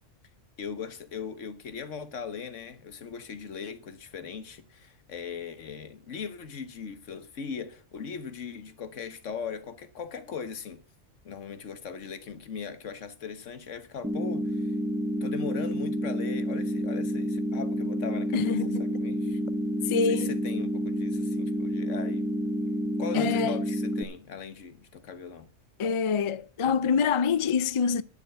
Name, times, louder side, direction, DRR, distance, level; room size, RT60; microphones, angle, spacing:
voice 1, 0.6-10.8 11.2-14.8 15.2-19.4 20.0-22.3 23.0-25.5, left 6 dB, 80° left, 1.5 m, -39 dB
sound 1, 14.0-24.0, equal, 5° right, 1.0 m, -29 dB
voice 2, 18.3-18.9 19.2-19.3 19.9-20.4 23.1-23.5 25.8-28.0, left 6 dB, 55° left, 0.3 m, -26 dB
11.5 x 6.8 x 6.7 m
omnidirectional pair, 1.3 m